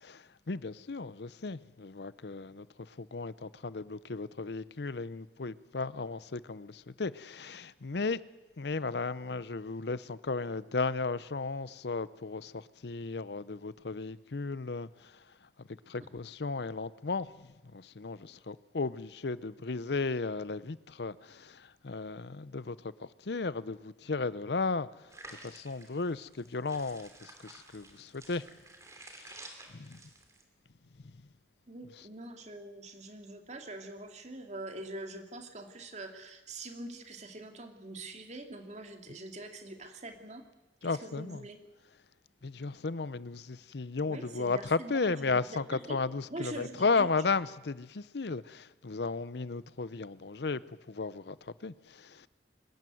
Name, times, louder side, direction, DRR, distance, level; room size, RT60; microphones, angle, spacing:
voice 1, 0.0-2.7 3.0-8.2 8.6-14.9 15.9-17.3 17.7-22.8 23.3-24.9 25.4-28.5 29.7-30.0 40.8-41.4 42.4-50.6 50.9-51.4 51.6-52.3, left 4 dB, 65° left, 0.7 m, -34 dB
sound 1, 25.1-30.4, right 2 dB, 15° right, 2.9 m, -52 dB
voice 2, 31.7-40.4 40.8-41.6 44.1-46.0 46.3-47.1, right 2 dB, 40° right, 2.4 m, -44 dB
24.0 x 14.0 x 9.3 m
head